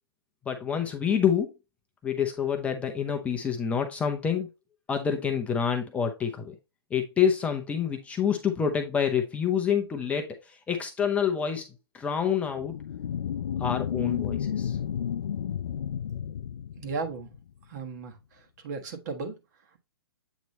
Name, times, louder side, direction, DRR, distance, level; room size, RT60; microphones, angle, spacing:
voice 1, 0.5-1.5 2.0-4.5 4.9-6.5 6.9-11.7 11.9-12.7 13.6-14.8, left 7 dB, 10° left, 0.6 m, -27 dB
sound 1, 12.6-17.5, left 9 dB, 80° left, 0.5 m, -32 dB
voice 2, 16.8-17.3 17.7-18.1 18.6-19.3, right 4 dB, 45° right, 1.4 m, -34 dB
8.1 x 3.0 x 4.1 m
hypercardioid pair, 145°, 13 cm